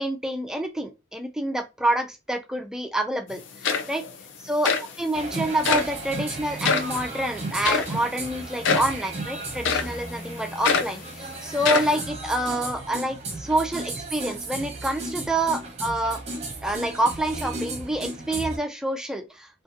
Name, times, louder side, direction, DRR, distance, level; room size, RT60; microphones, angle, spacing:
voice 1, 0.0-4.0 4.4-4.7 5.0-16.2 16.6-19.5, right 1 dB, 5° right, 0.3 m, -27 dB
sound 1, 3.3-3.4 3.6-4.1 4.6-4.9 5.6-5.9 6.6-6.9 7.6-7.9 8.6-9.0 9.6-10.0 10.6-11.0 11.6-12.0, left 5 dB, 80° left, 0.4 m, -24 dB
sound 2, 5.1-18.6, right 2 dB, 35° right, 0.7 m, -34 dB
2.6 x 2.5 x 2.5 m
head